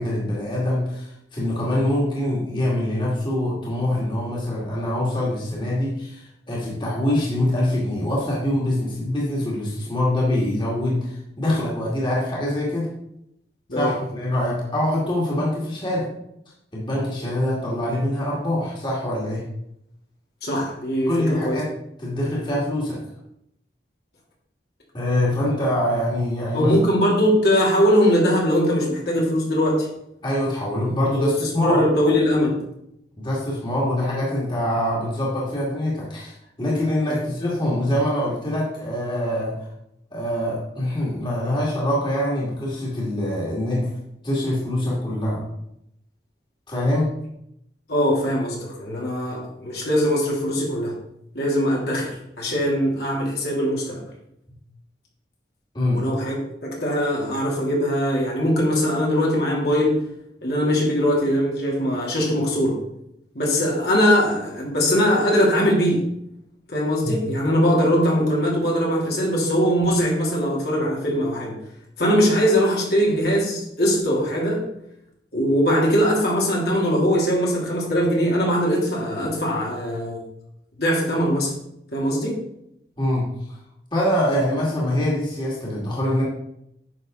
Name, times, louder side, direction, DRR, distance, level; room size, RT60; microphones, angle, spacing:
voice 1, 0.0-12.9 13.7-16.1 16.7-19.4 21.1-21.7 22.0-23.0 24.9-26.7 30.2-31.8 33.2-39.7 40.1-43.9 44.2-45.5 46.7-47.1 55.7-56.0 67.0-67.2 83.0-83.6 83.9-86.2, left 1 dB, 25° left, -5 dB, 2.2 m, -24 dB
voice 2, 20.4-21.6 25.5-25.6 26.5-29.9 31.1-31.3 31.6-32.6 47.9-50.9 51.3-54.0 55.9-60.0 60.4-62.8 63.3-66.1 66.7-71.5 72.0-74.6 75.3-80.2 80.8-81.5 81.9-82.3, equal, 65° left, -3 dB, 2.9 m, -21 dB
9.7 x 6.4 x 3.8 m, 0.78 s
head